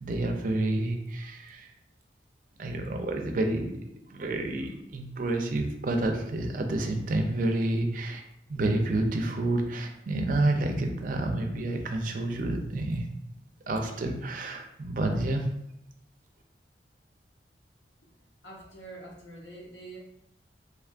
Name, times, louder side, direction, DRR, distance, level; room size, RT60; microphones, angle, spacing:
voice 1, 0.0-1.7 2.6-3.7 4.1-8.2 8.5-13.1 13.7-15.4, right 2 dB, 50° right, 3 dB, 0.4 m, -29 dB
voice 2, 18.4-20.0, right 2 dB, 75° left, -3 dB, 0.9 m, -45 dB
3.3 x 3.3 x 2.4 m, 0.79 s
head